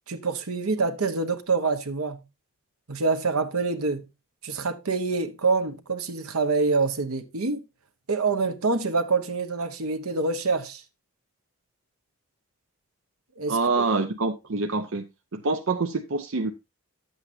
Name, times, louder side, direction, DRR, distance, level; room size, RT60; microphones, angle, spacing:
voice 1, 0.1-2.2 2.9-4.1 4.4-7.6 8.1-10.8 13.4-13.9, right 4 dB, 80° right, 1.1 m, -26 dB
voice 2, 13.5-15.0 15.3-16.5, right 3 dB, 60° right, 0.7 m, -26 dB
10.5 x 8.0 x 2.7 m
head